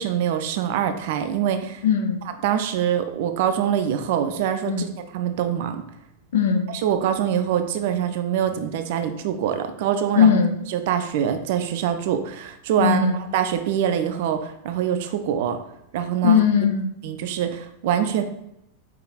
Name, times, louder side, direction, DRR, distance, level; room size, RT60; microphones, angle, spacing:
voice 1, 0.0-1.8 2.4-5.8 6.8-10.3 10.7-15.6 15.9-16.4 17.0-18.2, right 9 dB, 50° right, 8 dB, 0.4 m, -24 dB
voice 2, 1.8-2.2 4.7-4.9 6.3-6.6 10.2-10.5 12.8-13.2 16.2-16.9, left 7 dB, 60° left, 5 dB, 0.6 m, -18 dB
4.7 x 4.7 x 2.4 m, 0.83 s
figure-of-eight pair, 90°, 0 cm